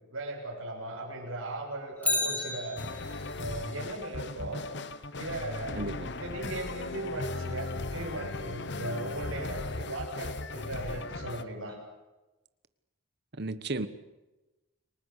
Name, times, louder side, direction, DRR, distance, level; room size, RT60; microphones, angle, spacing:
voice 1, 0.1-2.8 3.3-4.6 5.2-5.8 6.2-11.8, right 1 dB, 75° right, 7.4 m, -37 dB
Bicycle, 2.0-3.4 11.7-11.8, left 2 dB, 5° left, 2.3 m, -32 dB
sound 1, 2.8-11.4, left 3 dB, 55° left, 1.0 m, -37 dB
voice 2, 5.8-6.1 13.3-13.9, right 2 dB, 50° right, 1.3 m, -33 dB
29.5 x 19.5 x 8.3 m
head